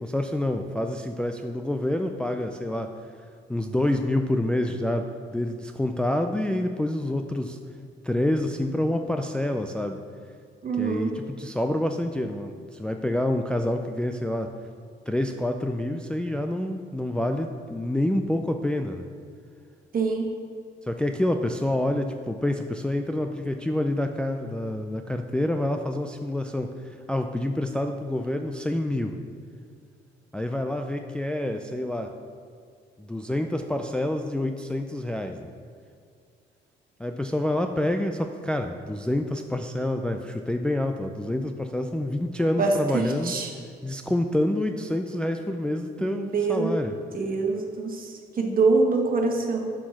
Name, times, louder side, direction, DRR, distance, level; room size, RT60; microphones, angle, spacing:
voice 1, 0.0-2.9 3.5-7.6 8.0-10.0 10.8-14.5 15.1-19.1 20.9-29.2 30.3-32.1 33.0-35.5 37.0-43.4 43.8-46.9, left 1 dB, 5° left, 5 dB, 0.4 m, -27 dB
voice 2, 10.6-11.1 19.9-20.3 42.6-43.5 46.0-46.7 47.1-49.7, right 3 dB, 45° right, 2 dB, 1.3 m, -25 dB
7.2 x 4.6 x 5.9 m, 2.3 s
cardioid pair, 90°, 20 cm